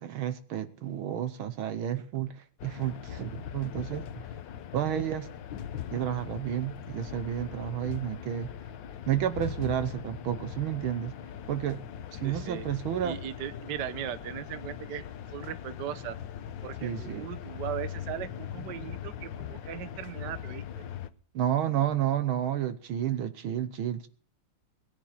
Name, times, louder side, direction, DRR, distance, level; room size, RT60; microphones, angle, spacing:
voice 1, 0.0-4.0 4.7-5.3 5.9-8.5 9.1-11.1 11.5-11.8 12.1-13.2 16.8-17.3 21.4-24.1, right 10 dB, 75° right, 11 dB, 1.7 m, -31 dB
sound 1, 2.6-21.1, left 9 dB, 65° left, 1.5 m, -40 dB
voice 2, 12.2-12.7 13.0-15.0 15.3-16.2 16.6-20.9, right 10 dB, 55° right, 12 dB, 1.5 m, -38 dB
20.5 x 9.8 x 5.8 m, 0.42 s
omnidirectional pair, 2.4 m